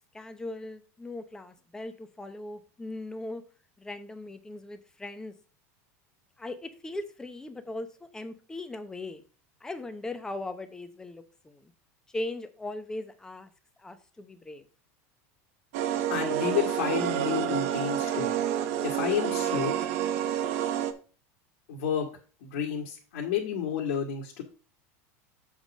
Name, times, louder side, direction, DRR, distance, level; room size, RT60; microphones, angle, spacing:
voice 1, 0.1-3.4 3.8-5.3 6.4-9.2 9.6-11.7 12.1-13.5 13.8-14.7, left 2 dB, 10° left, 9 dB, 0.8 m, -39 dB
sound 1, 15.7-20.9, right 10 dB, 70° right, 0.9 m, -29 dB
voice 2, 16.1-18.3 18.8-19.7 21.7-22.1 22.4-24.4, left 8 dB, 80° left, 0 dB, 1.8 m, -30 dB
7.2 x 3.8 x 6.1 m, 0.38 s
supercardioid pair, 145°, 8 cm